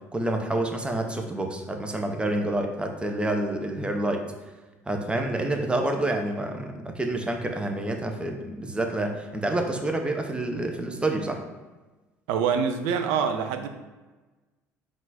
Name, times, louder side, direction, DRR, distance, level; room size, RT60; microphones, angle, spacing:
voice 1, 0.1-4.3 4.9-11.4, right 1 dB, 10° right, 3 dB, 0.5 m, -28 dB
voice 2, 12.3-13.7, right 6 dB, 60° right, 6 dB, 0.4 m, -25 dB
3.8 x 2.4 x 3.9 m, 1.2 s
figure-of-eight pair, 60°, 8 cm